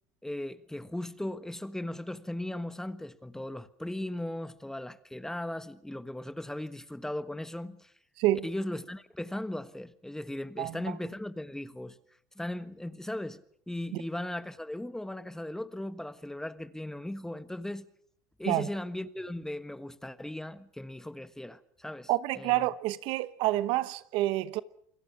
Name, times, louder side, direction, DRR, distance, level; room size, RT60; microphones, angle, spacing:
voice 1, 0.2-7.9 8.4-12.0 12.3-17.9 18.4-22.1 22.4-22.7, left 1 dB, 5° left, 1.4 m, -37 dB
voice 2, 10.6-10.9 13.9-14.0 18.5-18.7 22.1-24.6, right 16 dB, 65° right, 1.0 m, -28 dB
28.5 x 23.0 x 6.0 m
supercardioid pair, 95°, 9 cm